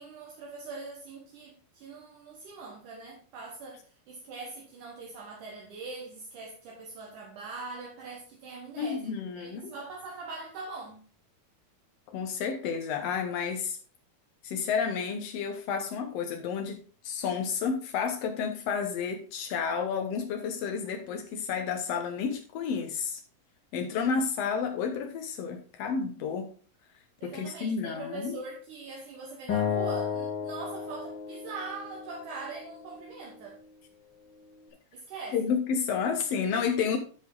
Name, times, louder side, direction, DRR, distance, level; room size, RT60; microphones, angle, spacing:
voice 1, 0.0-11.0 27.2-33.6 34.9-35.4, right 3 dB, 70° right, 2.6 m, -42 dB
voice 2, 8.8-9.7 12.1-13.8 14.4-16.8 17.0-23.2 23.7-26.5 27.2-28.3 35.3-37.0, left 6 dB, 85° left, 1.4 m, -31 dB
Acoustic guitar, 29.5-32.7, left 7 dB, 45° left, 1.6 m, -33 dB
11.5 x 5.2 x 3.8 m
omnidirectional pair, 4.0 m